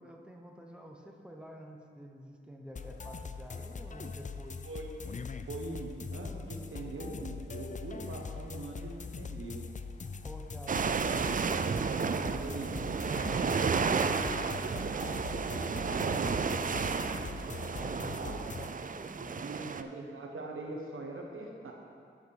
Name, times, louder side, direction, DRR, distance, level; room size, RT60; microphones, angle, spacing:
voice 1, 0.0-4.6 10.2-11.2 13.1-14.7 17.7-19.7, equal, 5° right, 1 dB, 1.1 m, -49 dB
sound 1, 2.8-18.8, left 4 dB, 40° left, 0.4 m, -42 dB
voice 2, 5.5-9.7 12.2-12.7 13.0-13.8 15.5-17.1 17.8-18.4 19.2-21.7, right 2 dB, 80° right, 0 dB, 1.1 m, -42 dB
sound 2, 10.7-19.8, right 5 dB, 40° right, 0.4 m, -32 dB
9.3 x 5.1 x 5.4 m, 2.2 s
cardioid pair, 45°, 21 cm